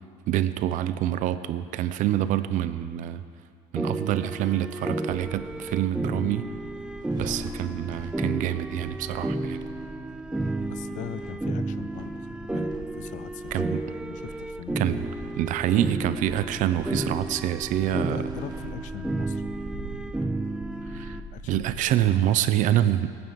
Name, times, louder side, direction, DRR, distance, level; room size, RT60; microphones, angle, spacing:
voice 1, 0.3-3.2 3.7-6.5 7.2-9.6 12.5-12.6 13.5-13.8 14.8-15.1 15.4-18.2 20.9-21.2 21.5-23.1, right 12 dB, 55° right, 13 dB, 0.7 m, -26 dB
sound 1, 3.8-21.2, right 2 dB, 5° right, 0.6 m, -32 dB
sound 2, 6.3-21.8, right 2 dB, 25° right, 1.7 m, -44 dB
voice 2, 10.6-14.9 17.9-19.4 21.3-21.7 22.2-22.7, left 13 dB, 50° left, 15 dB, 0.6 m, -41 dB
19.0 x 9.5 x 7.1 m, 2.2 s
cardioid pair, 135°, 16 cm